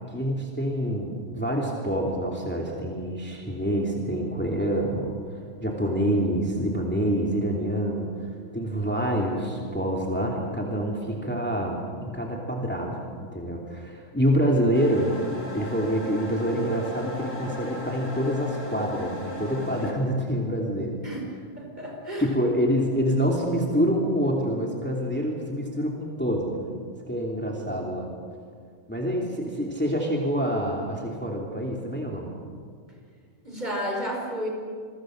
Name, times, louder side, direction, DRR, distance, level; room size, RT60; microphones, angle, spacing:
voice 1, 0.0-5.2 5.6-12.9 13.2-15.1 15.5-21.0 22.2-26.8 27.1-28.1 28.9-32.3, equal, 10° left, -1 dB, 2.9 m, -26 dB
sound 1, 14.7-19.9, left 1 dB, 70° left, 4.3 m, -36 dB
voice 2, 21.6-22.3 33.4-34.5, equal, 35° right, 0 dB, 5.1 m, -31 dB
28.5 x 23.0 x 6.6 m, 2.1 s
omnidirectional pair, 1.4 m